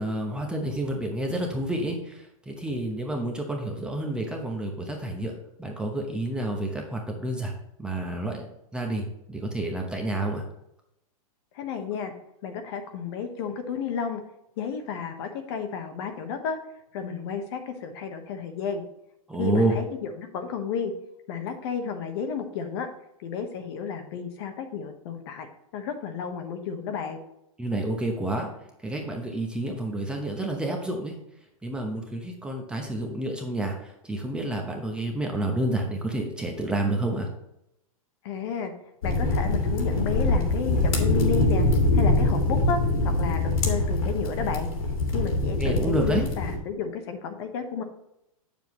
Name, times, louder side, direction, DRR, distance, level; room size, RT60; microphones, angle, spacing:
voice 1, 0.0-7.5 7.8-10.4 19.3-19.8 27.6-28.5 28.8-31.2 31.6-37.3 45.6-46.2, right 1 dB, 5° right, 1 dB, 0.9 m, -29 dB
voice 2, 11.5-12.1 12.4-14.2 14.6-16.6 16.9-18.8 19.4-20.9 21.3-22.9 23.2-25.5 25.7-27.2 38.2-38.7 39.0-41.6 41.9-44.7 45.1-47.8, left 6 dB, 45° left, 6 dB, 1.1 m, -32 dB
sound 1, 39.0-46.6, left 2 dB, 70° left, 2.8 m, -24 dB
7.9 x 7.1 x 3.1 m, 0.81 s
hypercardioid pair, 155°, 18 cm